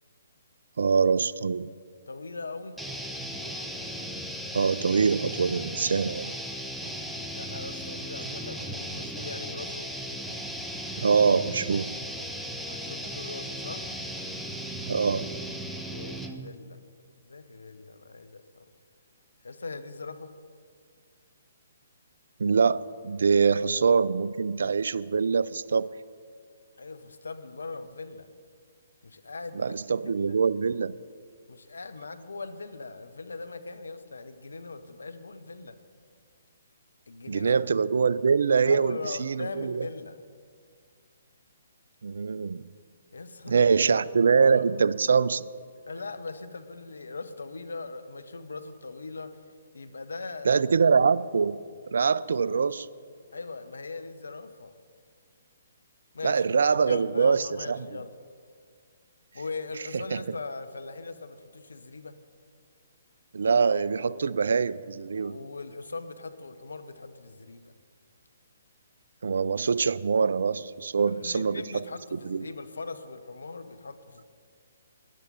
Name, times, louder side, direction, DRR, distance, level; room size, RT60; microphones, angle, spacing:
voice 1, 0.8-1.7 4.5-6.3 11.0-11.9 14.9-15.3 22.4-25.9 29.6-31.0 37.3-39.8 42.0-42.7 43.5-45.5 50.5-51.6 51.9-52.9 56.2-57.8 60.1-60.2 63.3-65.4 69.2-71.6 72.1-72.4, right 5 dB, 65° right, 19 dB, 0.4 m, -24 dB
voice 2, 2.1-2.8 7.3-9.9 12.7-13.9 15.7-16.8 17.2-18.7 19.4-20.3 23.4-23.6 26.8-28.3 29.0-30.4 31.5-35.8 37.1-37.6 38.7-40.2 43.1-43.7 44.5-44.6 45.9-49.4 49.7-50.6 53.3-54.7 56.1-58.1 59.3-62.1 65.1-67.7 71.1-74.2, left 3 dB, 75° left, 10 dB, 0.9 m, -40 dB
sound 1, 2.8-16.5, equal, ahead, 0.8 m, -36 dB
13.0 x 11.0 x 5.3 m, 2.1 s
figure-of-eight pair, 130°, 0 cm